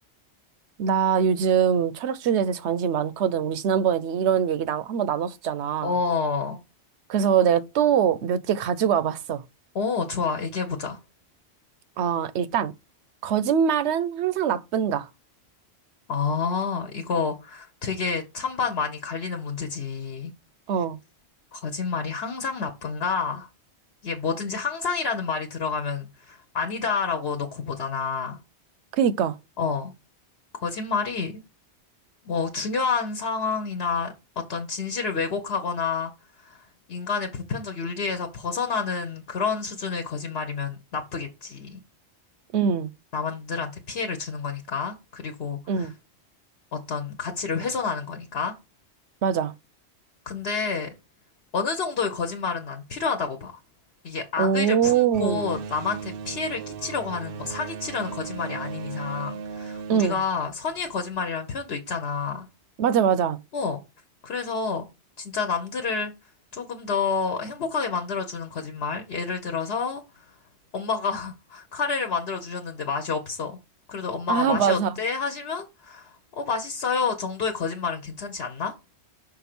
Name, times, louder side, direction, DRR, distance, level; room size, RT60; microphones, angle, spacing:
voice 1, 0.8-5.9 7.1-9.4 12.0-12.7 13.2-15.1 20.7-21.0 28.9-29.4 42.5-42.9 45.7-45.9 49.2-49.5 54.4-55.4 59.9-60.2 62.8-63.4 74.3-74.9, right 8 dB, 85° right, 0.9 m, -23 dB
voice 2, 5.8-6.6 9.7-11.0 16.1-20.3 21.5-23.5 24.0-28.4 29.6-29.9 30.6-31.4 32.2-36.1 36.4-41.8 43.1-45.9 46.7-48.6 50.3-51.0 51.5-53.6 54.0-62.5 63.5-63.8 64.2-64.9 65.2-66.1 66.5-70.3 70.7-73.6 73.9-78.7, left 5 dB, 70° left, 1.2 m, -29 dB
sound 1, 55.1-61.2, right 5 dB, 65° right, 0.7 m, -37 dB
5.8 x 3.8 x 6.0 m
omnidirectional pair, 1.1 m